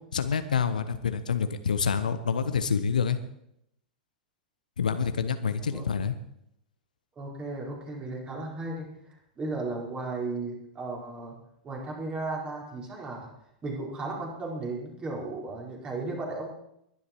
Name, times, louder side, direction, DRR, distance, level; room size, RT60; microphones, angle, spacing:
voice 1, 0.1-3.2 4.8-6.1, left 6 dB, 70° left, 11 dB, 1.1 m, -27 dB
voice 2, 7.2-8.9 9.4-11.4 11.6-13.3 13.6-16.5, right 2 dB, 20° right, -1 dB, 5.0 m, -35 dB
21.5 x 11.5 x 4.6 m, 0.76 s
figure-of-eight pair, 95°, 4 cm